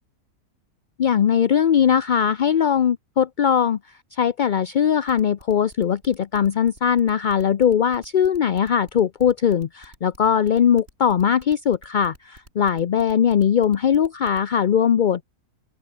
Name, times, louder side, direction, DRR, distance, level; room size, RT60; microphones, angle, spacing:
voice 1, 1.0-3.8 4.1-15.2, left 8 dB, 55° left, 0.5 m, -20 dB
sound 1, 5.1-14.4, right 1 dB, 45° right, 6.5 m, -49 dB
open air
omnidirectional pair, 1.5 m